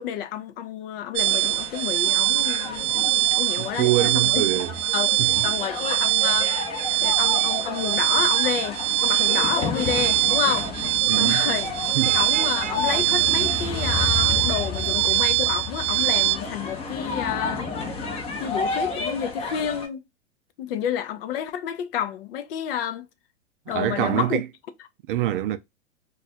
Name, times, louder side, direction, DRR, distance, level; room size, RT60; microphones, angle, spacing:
voice 1, 0.0-4.4 4.9-6.5 7.0-10.7 11.2-11.7 12.1-17.7 18.4-20.0 20.6-23.1 23.7-24.4, left 9 dB, 50° left, 0.6 m, -30 dB
sound 1, 1.2-19.9, left 4 dB, 15° left, 0.6 m, -32 dB
sound 2, 1.2-16.4, right 15 dB, 70° right, 0.8 m, -23 dB
voice 2, 3.6-4.7 5.2-5.5 11.1-11.5 12.0-12.2 23.7-24.5 25.1-25.6, right 14 dB, 45° right, 0.4 m, -25 dB
Vehicle horn car horn honking / Traffic noise roadway noise, 9.0-14.3, right 8 dB, 20° right, 0.8 m, -42 dB
2.5 x 2.4 x 4.1 m
hypercardioid pair, 125°, 36 cm